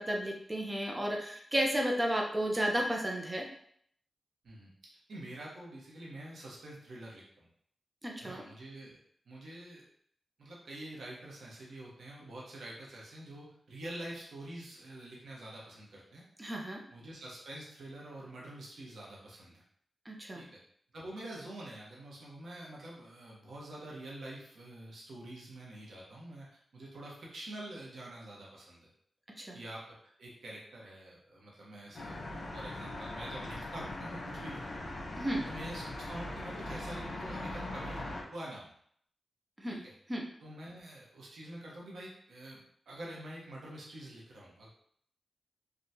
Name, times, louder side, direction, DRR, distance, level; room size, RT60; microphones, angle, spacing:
voice 1, 0.0-3.4 8.0-8.4 16.4-16.8 20.1-20.4 29.4-29.6 35.2-35.4 39.6-39.8 40.1-40.2, equal, 25° right, 0 dB, 0.7 m, -33 dB
voice 2, 5.1-7.5 8.2-9.0 9.3-9.8 10.4-16.2 16.9-19.6 20.3-20.6 20.9-26.5 26.7-28.9 29.5-29.8 30.2-34.9 35.4-35.8 36.1-38.7 39.7-39.9 40.4-44.7, right 1 dB, 80° right, -4 dB, 1.0 m, -46 dB
sound 1, 31.9-38.2, left 1 dB, 65° left, 0.9 m, -40 dB
3.5 x 2.4 x 2.8 m, 0.64 s
cardioid pair, 60°, 0 cm